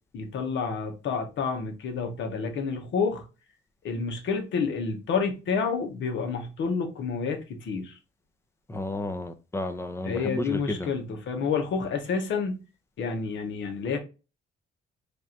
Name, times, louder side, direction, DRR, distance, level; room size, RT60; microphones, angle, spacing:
voice 1, 0.1-3.2 3.8-7.9 10.0-12.6 13.0-14.0, left 5 dB, 70° left, 1.1 m, -29 dB
voice 2, 8.7-10.9, left 1 dB, 15° left, 0.7 m, -32 dB
3.3 x 2.5 x 4.3 m
cardioid pair, 90°, 20 cm